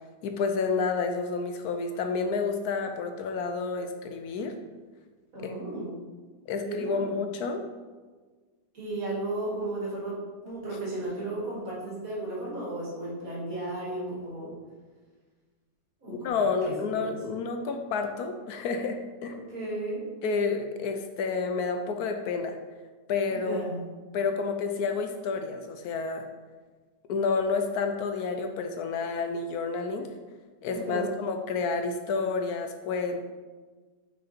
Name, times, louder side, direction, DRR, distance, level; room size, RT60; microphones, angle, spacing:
voice 1, 0.2-4.6 5.4-5.5 6.5-7.6 16.1-19.4 20.2-22.6 23.1-23.6 24.1-26.3 27.1-30.1 30.6-33.3, left 4 dB, 75° left, 6 dB, 1.0 m, -30 dB
voice 2, 5.3-5.9 6.6-7.1 8.7-14.5 16.0-16.3 16.6-17.2 19.3-20.0 23.3-23.9 30.7-31.1, right 2 dB, 55° right, -7 dB, 2.7 m, -34 dB
5.4 x 5.3 x 4.3 m, 1.4 s
omnidirectional pair, 1.8 m